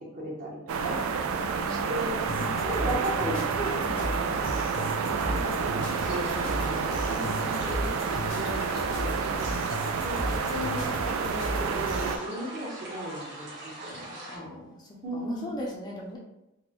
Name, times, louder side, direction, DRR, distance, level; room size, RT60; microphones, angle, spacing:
voice 1, 0.2-1.0 1.7-2.3 2.6-4.8 5.1-7.3 7.7-9.5 10.0-13.5 13.9-14.7 15.0-15.5, right 1 dB, 40° right, -3 dB, 0.9 m, -36 dB
sound 1, 0.7-12.2, right 5 dB, 85° right, 0.3 m, -29 dB
voice 2, 1.3-1.9 2.4-2.6 7.1-8.5 14.3-14.8 15.1-16.2, left 1 dB, 20° left, -2 dB, 0.4 m, -40 dB
sound 2, 2.3-12.2, left 1 dB, 70° left, 0.6 m, -36 dB
sound 3, 5.8-14.4, right 1 dB, 60° right, 1.4 m, -41 dB
3.9 x 2.2 x 2.9 m, 0.91 s
head